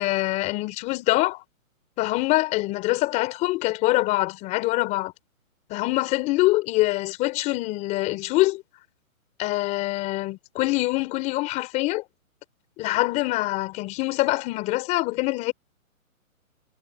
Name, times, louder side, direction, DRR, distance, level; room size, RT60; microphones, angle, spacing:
voice 1, 0.0-1.4 2.0-5.1 5.7-8.6 9.4-12.0 12.8-15.5, left 20 dB, 15° left, 3.9 m, -24 dB
hypercardioid pair, 165°, 42 cm